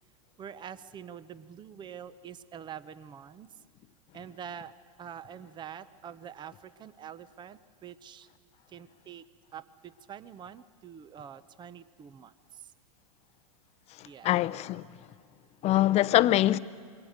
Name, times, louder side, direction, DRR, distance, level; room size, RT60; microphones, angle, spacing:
voice 1, 0.4-3.5 4.1-4.7 5.0-8.3 8.7-9.2 9.5-12.3 14.0-14.3, right 8 dB, 25° right, 0.9 m, -45 dB
voice 2, 14.0-14.8 15.6-16.6, left 14 dB, 35° left, 0.7 m, -24 dB
27.0 x 23.5 x 6.7 m
hypercardioid pair, 105°, 18 cm